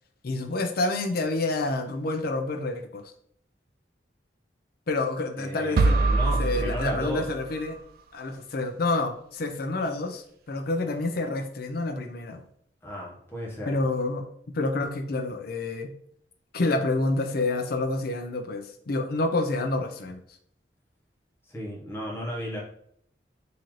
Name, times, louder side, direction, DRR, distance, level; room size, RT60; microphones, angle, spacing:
voice 1, 0.2-3.0 4.9-6.0 6.2-7.8 8.1-12.4 13.7-14.2 14.5-15.9 16.5-20.2, left 2 dB, 60° left, 6 dB, 0.5 m, -28 dB
voice 2, 5.4-7.3 12.8-13.7 21.5-22.6, equal, 15° left, -5 dB, 1.1 m, -34 dB
sound 1, 5.8-7.8, right 3 dB, 55° right, 0.3 m, -24 dB
3.7 x 2.8 x 3.1 m, 0.67 s
head